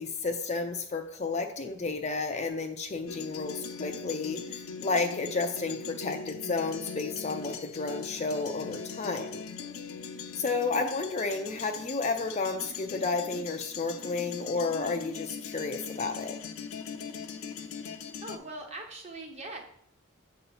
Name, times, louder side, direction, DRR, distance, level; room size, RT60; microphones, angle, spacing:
voice 1, 0.0-9.4 10.4-16.4, left 3 dB, 30° left, 4 dB, 0.4 m, -32 dB
sound 1, 3.1-18.4, left 5 dB, 70° left, 0.6 m, -40 dB
voice 2, 10.4-10.7 18.2-19.6, right 2 dB, 30° right, 2 dB, 0.9 m, -42 dB
7.5 x 2.9 x 5.4 m, 0.70 s
head